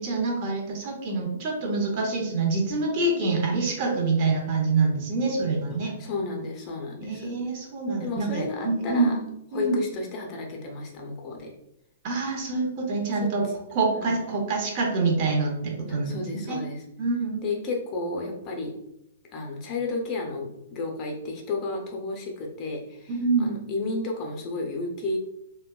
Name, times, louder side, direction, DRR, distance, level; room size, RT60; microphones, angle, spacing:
voice 1, 0.0-5.9 7.0-9.2 9.5-9.8 12.0-13.4 13.7-16.2 16.5-16.6 17.0-17.5 23.1-23.5, right 3 dB, 40° right, 1 dB, 0.6 m, -26 dB
voice 2, 5.8-7.4 8.0-9.2 9.5-11.5 13.1-13.6 13.9-14.3 16.0-16.8 17.4-18.7 19.3-25.2, left 3 dB, 30° left, 0 dB, 0.5 m, -32 dB
2.7 x 2.1 x 2.2 m, 0.83 s
figure-of-eight pair, 115°, 0 cm